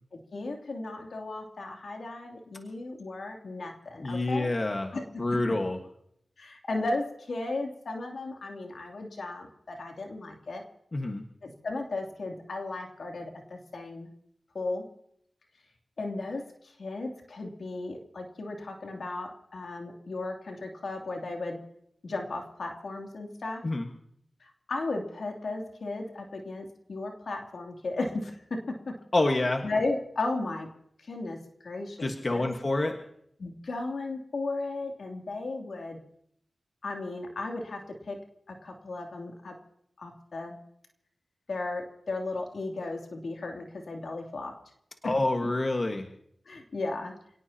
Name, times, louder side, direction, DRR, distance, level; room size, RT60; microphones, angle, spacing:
voice 1, 0.3-4.5 4.9-5.3 6.4-10.6 11.4-14.1 14.5-14.8 16.0-16.4 16.8-21.6 22.0-23.6 24.4-28.4 29.6-30.7 31.1-32.6 33.4-36.0 36.8-37.8 38.1-38.2 38.5-39.6 40.0-40.6 41.5-44.5 46.5-47.1, left 2 dB, 80° left, 1 dB, 2.9 m, -35 dB
voice 2, 4.0-5.8 10.9-11.2 23.6-23.9 29.1-29.6 32.0-32.9 45.0-46.1, left 2 dB, 50° left, 3 dB, 1.5 m, -27 dB
28.0 x 18.0 x 2.9 m, 0.72 s
cardioid pair, 40°, 0 cm